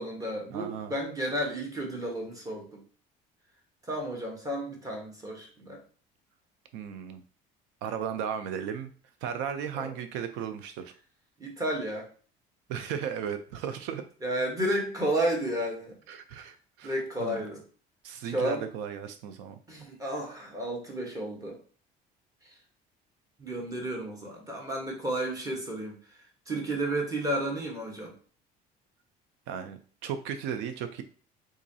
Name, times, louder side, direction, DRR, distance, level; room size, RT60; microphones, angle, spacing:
voice 1, 0.0-2.8 3.9-5.8 9.8-9.9 11.4-12.1 14.2-15.9 16.8-17.6 18.2-18.6 19.7-21.6 23.4-26.0 26.5-28.1, right 1 dB, 20° right, 0 dB, 1.2 m, -32 dB
voice 2, 0.5-0.9 6.7-7.2 7.8-8.9 9.2-10.9 12.7-14.0 16.1-17.4 18.0-19.6 29.5-31.0, right 8 dB, 85° right, 9 dB, 0.5 m, -35 dB
3.7 x 3.0 x 2.7 m, 0.41 s
cardioid pair, 125°, 18 cm